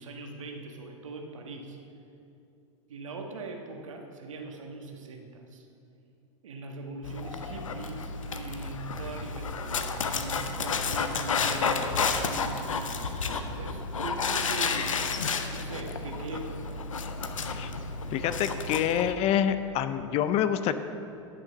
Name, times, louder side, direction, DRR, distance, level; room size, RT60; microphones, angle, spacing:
voice 1, 0.0-1.8 2.9-5.7 6.4-14.9 15.5-16.8, right 3 dB, 80° right, 2 dB, 1.4 m, -41 dB
Dog, 7.0-19.1, left 4 dB, 85° left, 0.7 m, -31 dB
voice 2, 18.1-20.7, left 9 dB, 40° left, 11 dB, 0.5 m, -27 dB
11.0 x 6.0 x 5.9 m, 2.7 s
hypercardioid pair, 100°, 16 cm